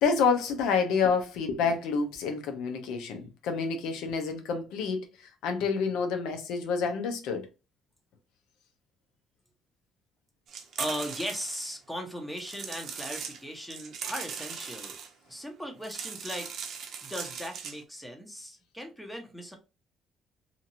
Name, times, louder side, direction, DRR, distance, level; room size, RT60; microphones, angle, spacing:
voice 1, 0.0-7.5, left 5 dB, 90° left, 0.7 m, -28 dB
sound 1, 10.5-11.7 12.4-13.4 13.7-15.1 15.7-17.8, right 6 dB, 60° right, 0.6 m, -39 dB
voice 2, 10.8-15.0 15.3-16.5 17.0-19.6, equal, 5° left, 0.9 m, -38 dB
2.9 x 2.5 x 2.7 m
cardioid pair, 105°, 0 cm